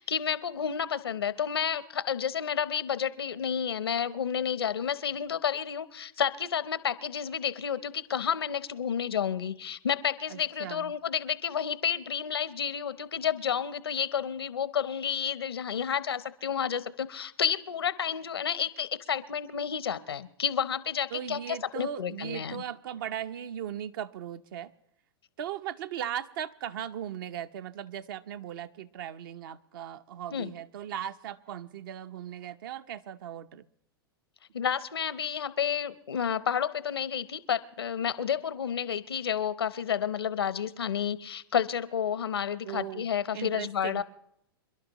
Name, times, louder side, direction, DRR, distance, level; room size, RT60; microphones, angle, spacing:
voice 1, 0.0-22.6 30.3-30.5 34.5-44.0, left 8 dB, 85° left, 15 dB, 0.8 m, -30 dB
voice 2, 10.3-10.9 21.1-24.7 25.4-33.7 42.7-43.0 43.3-44.0, right 10 dB, 65° right, 11 dB, 0.8 m, -38 dB
27.5 x 11.5 x 3.0 m, 0.76 s
hypercardioid pair, 105°, 13 cm